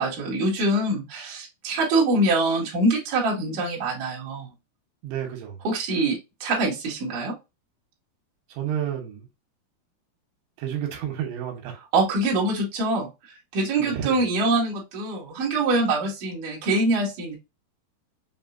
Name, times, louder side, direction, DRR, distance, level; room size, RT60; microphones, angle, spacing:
voice 1, 0.0-4.5 5.6-7.3 11.9-13.1 13.5-17.4, right 2 dB, 55° right, 3.1 m, -24 dB
voice 2, 5.0-5.6 8.5-9.3 10.6-11.8 13.8-14.2, right 10 dB, 90° right, 3.4 m, -31 dB
6.8 x 2.8 x 2.6 m
omnidirectional pair, 5.0 m